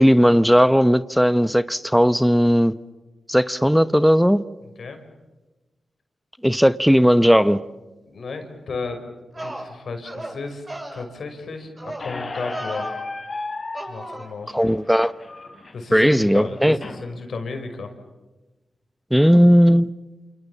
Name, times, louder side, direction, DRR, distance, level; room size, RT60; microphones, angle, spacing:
voice 1, 0.0-2.7 3.3-4.4 6.4-7.6 14.5-15.1 15.9-16.8 19.1-19.9, equal, ahead, 14 dB, 0.9 m, -16 dB
voice 2, 8.0-9.1 9.4-10.6 10.9-13.0 13.9-14.5 15.7-17.9, left 4 dB, 70° left, 6 dB, 5.9 m, -33 dB
sound 1, 8.8-8.9 9.3-9.7 10.0-10.4 10.7-11.0 11.8-12.1 12.3-13.0 13.7-14.3, right 1 dB, 30° right, 7.8 m, -35 dB
Squeak, 12.0-17.0, left 3 dB, 45° left, 4.9 m, -35 dB
28.0 x 28.0 x 7.3 m, 1.1 s
supercardioid pair, 45°, 0 cm